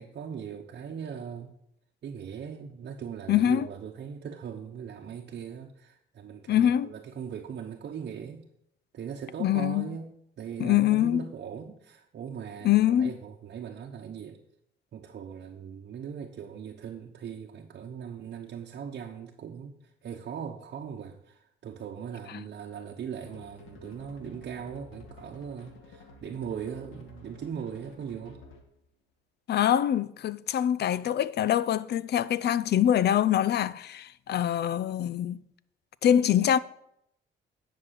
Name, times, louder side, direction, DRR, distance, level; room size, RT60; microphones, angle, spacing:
voice 1, 0.0-1.5 2.0-8.4 8.9-10.1 10.4-14.4 14.9-28.4, right 7 dB, 55° right, 1.0 m, -39 dB
voice 2, 3.3-3.7 6.5-6.9 9.4-9.9 10.6-11.2 12.6-13.1 22.3-22.4 29.5-35.4 36.0-36.6, left 10 dB, 55° left, 0.5 m, -24 dB
sound 1, 23.3-28.8, left 3 dB, 80° left, 1.9 m, -51 dB
10.0 x 6.2 x 6.4 m
cardioid pair, 90°, 20 cm